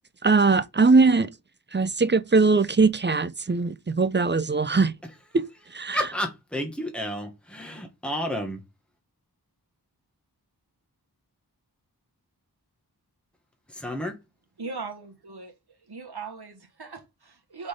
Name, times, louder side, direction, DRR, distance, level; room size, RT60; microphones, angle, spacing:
voice 1, 0.2-1.3 1.7-4.9 5.3-5.4 5.7-6.1, right 4 dB, 30° right, 0.5 m, -21 dB
voice 2, 5.9-8.6 13.7-14.1, equal, 5° left, 1.5 m, -31 dB
voice 3, 14.6-15.5 15.9-17.7, right 4 dB, 70° right, 1.3 m, -39 dB
5.1 x 4.0 x 5.0 m
wide cardioid pair, 40°, 40 cm